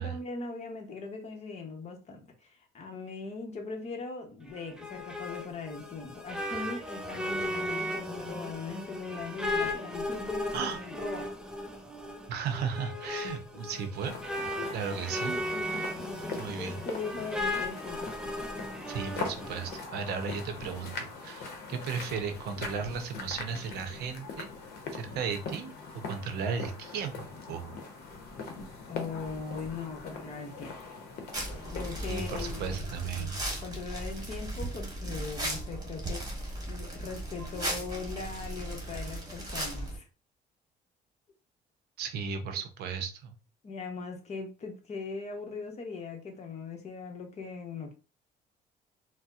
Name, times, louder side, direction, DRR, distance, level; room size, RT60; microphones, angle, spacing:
voice 1, 0.0-11.3 14.6-14.7 15.2-18.1 19.4-19.6 28.9-31.0 31.7-32.8 33.2-33.3 33.6-40.1 43.6-47.9, left 4 dB, 40° left, 4 dB, 0.8 m, -40 dB
sound 1, 4.5-19.8, left 1 dB, 5° right, 0.5 m, -36 dB
voice 2, 12.3-14.1 14.7-15.3 16.4-16.8 18.9-24.5 24.9-27.8 32.1-33.4 42.0-43.3, right 6 dB, 75° right, 7 dB, 0.6 m, -35 dB
sound 2, 14.0-32.7, left 4 dB, 70° left, 0.8 m, -42 dB
sound 3, 31.3-40.0, right 1 dB, 20° right, 1.1 m, -37 dB
4.1 x 2.0 x 2.4 m, 0.34 s
cardioid pair, 110°, 17 cm